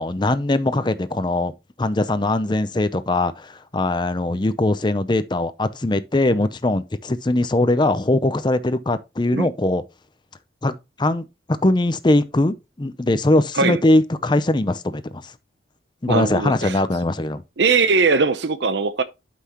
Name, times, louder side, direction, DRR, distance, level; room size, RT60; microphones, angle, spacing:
voice 1, 0.0-1.5 1.8-9.8 10.6-11.2 11.6-15.3 16.0-17.4, left 2 dB, 25° left, 0.6 m, -21 dB
voice 2, 16.1-16.8 17.6-19.0, right 4 dB, 65° right, 0.7 m, -20 dB
11.5 x 5.7 x 3.0 m
head